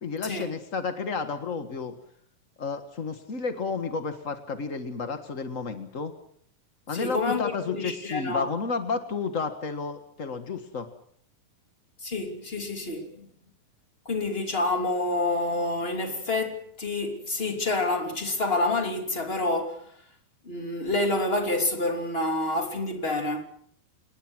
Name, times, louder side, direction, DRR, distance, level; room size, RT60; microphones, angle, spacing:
voice 1, 0.0-2.0 2.6-6.1 6.9-10.9, left 4 dB, 85° left, 0.7 m, -31 dB
voice 2, 6.9-8.5 12.0-13.3 14.0-19.8 20.4-23.4, left 2 dB, 15° left, 2.7 m, -28 dB
28.0 x 20.0 x 6.3 m
omnidirectional pair, 4.2 m